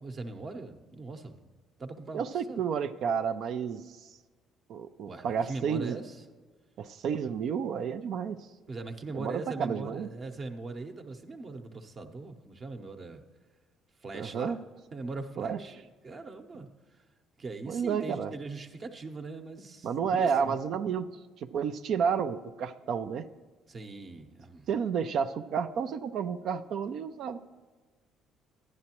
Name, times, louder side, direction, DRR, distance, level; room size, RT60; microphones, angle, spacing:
voice 1, 0.0-1.4 1.8-2.6 5.1-6.2 8.7-13.2 14.0-14.6 14.9-17.0 17.4-20.6 23.7-24.7, right 3 dB, 45° right, 6 dB, 0.9 m, -40 dB
voice 2, 2.1-3.8 4.7-6.0 6.8-8.4 9.1-10.1 14.1-14.6 15.4-15.6 17.7-18.3 19.8-21.1 21.4-23.3 24.7-27.4, right 7 dB, 65° right, 9 dB, 0.4 m, -31 dB
11.5 x 9.7 x 3.0 m, 1.4 s
supercardioid pair, 65°, 0 cm